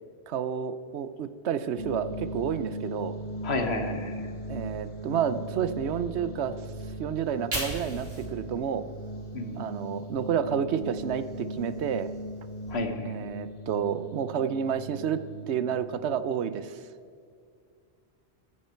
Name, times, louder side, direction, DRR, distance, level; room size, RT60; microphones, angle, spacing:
voice 1, 0.3-3.1 4.5-6.6 7.0-8.8 9.6-12.1 13.0-15.2 15.5-16.8, right 8 dB, 90° right, 13 dB, 1.0 m, -30 dB
sound 1, 1.8-16.3, equal, 30° left, 0.8 m, -39 dB
voice 2, 3.4-4.2 9.3-9.7 12.7-13.1, left 2 dB, 70° left, 6 dB, 1.5 m, -31 dB
Fire, 7.1-10.3 10.7-12.7, right 1 dB, 65° right, 3.6 m, -41 dB
14.5 x 11.0 x 4.5 m, 2.3 s
omnidirectional pair, 1.1 m